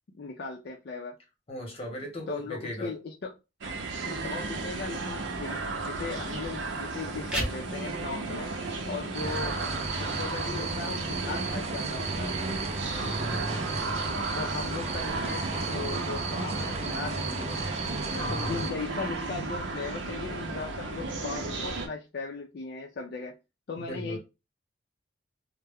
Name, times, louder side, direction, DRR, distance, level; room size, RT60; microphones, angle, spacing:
voice 1, 0.1-1.1 2.3-3.3 4.0-8.5 8.9-12.4 14.4-17.6 18.3-23.4 23.7-24.2, left 4 dB, 60° left, 0.4 m, -38 dB
voice 2, 1.5-2.9 12.9-13.9 18.1-18.6 23.8-24.2, equal, 30° left, 0.9 m, -37 dB
sound 1, 3.6-21.9, right 3 dB, 80° right, 0.6 m, -34 dB
sound 2, 7.1-18.1, right 1 dB, 5° right, 0.8 m, -44 dB
sound 3, 9.1-18.7, right 3 dB, 35° right, 0.4 m, -34 dB
2.2 x 2.0 x 3.4 m
head